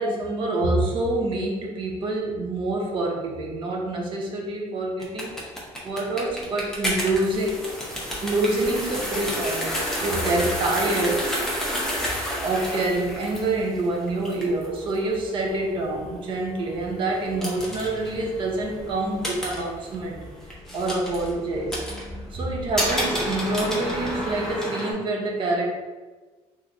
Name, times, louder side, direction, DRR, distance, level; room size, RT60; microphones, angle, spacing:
voice 1, 0.0-5.4 5.8-7.6 8.2-11.3 12.4-20.2 20.7-21.8 22.3-25.7, right 2 dB, 45° right, 0 dB, 0.6 m, -26 dB
sound 1, 5.0-24.9, equal, 5° left, 0.7 m, -31 dB
3.2 x 2.5 x 2.5 m, 1.3 s
cardioid pair, 130°, 12 cm